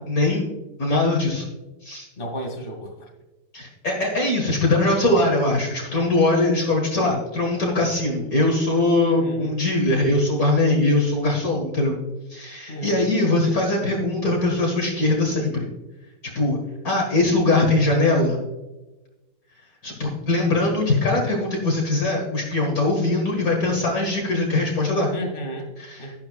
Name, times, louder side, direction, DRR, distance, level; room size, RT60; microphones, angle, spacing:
voice 1, 0.1-0.5 0.8-1.5 1.8-2.1 3.5-12.0 12.3-15.6 16.2-16.6 16.8-18.4 19.8-25.1 25.8-26.2, left 2 dB, 50° left, -1 dB, 2.1 m, -21 dB
voice 2, 2.2-2.9 9.0-9.6 12.7-13.1 25.1-25.7 26.0-26.2, right 1 dB, 30° left, 1 dB, 2.4 m, -32 dB
12.0 x 11.5 x 2.3 m, 1.1 s
omnidirectional pair, 2.0 m